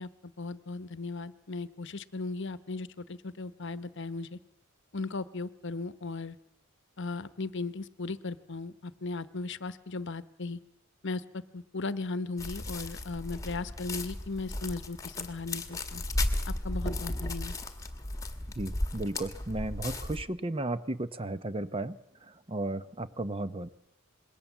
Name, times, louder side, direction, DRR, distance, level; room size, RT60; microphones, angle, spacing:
voice 1, 0.0-4.4 4.9-6.4 7.0-10.6 11.0-16.0 16.5-17.6, left 3 dB, 55° left, 14 dB, 1.0 m, -37 dB
sound 1, 12.4-20.2, left 1 dB, 15° left, 1.6 m, -35 dB
voice 2, 18.6-23.7, right 2 dB, 25° right, 12 dB, 0.9 m, -34 dB
26.5 x 21.5 x 7.3 m, 0.74 s
head